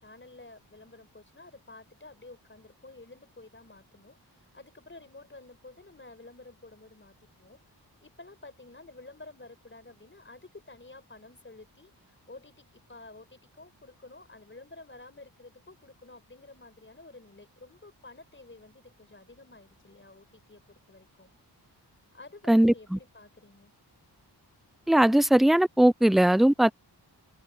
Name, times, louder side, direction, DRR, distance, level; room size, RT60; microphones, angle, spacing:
voice 1, 0.0-7.6 8.0-21.3 22.1-23.7, left 2 dB, 30° left, 5.6 m, -51 dB
voice 2, 22.5-23.0 24.9-26.7, right 1 dB, ahead, 0.4 m, -20 dB
wide cardioid pair, 85°, 40 cm